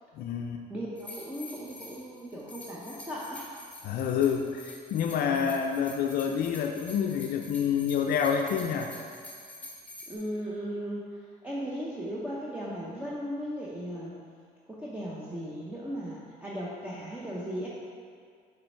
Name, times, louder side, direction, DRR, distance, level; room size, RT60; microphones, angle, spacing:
voice 1, 0.2-0.6 3.8-8.9, left 7 dB, 65° left, 3 dB, 0.4 m, -28 dB
voice 2, 0.7-3.5 5.3-5.6 10.1-11.1 11.4-14.2 14.7-17.7, equal, 10° right, -6 dB, 0.7 m, -37 dB
sound 1, 1.0-10.2, left 1 dB, 10° left, 1.1 m, -47 dB
6.6 x 3.3 x 4.4 m, 2.1 s
cardioid pair, 110°, 17 cm